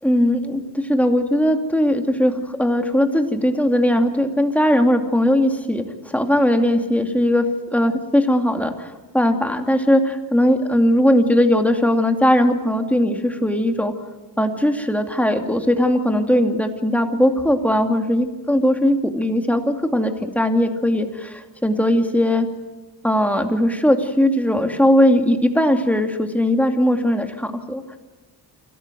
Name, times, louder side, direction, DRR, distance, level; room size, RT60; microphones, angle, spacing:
voice 1, 0.0-5.9 6.1-7.4 7.7-13.9 14.4-22.5 23.0-28.0, equal, 5° left, 5 dB, 2.5 m, -19 dB
28.0 x 13.5 x 9.2 m, 1.3 s
cardioid pair, 95°, 42 cm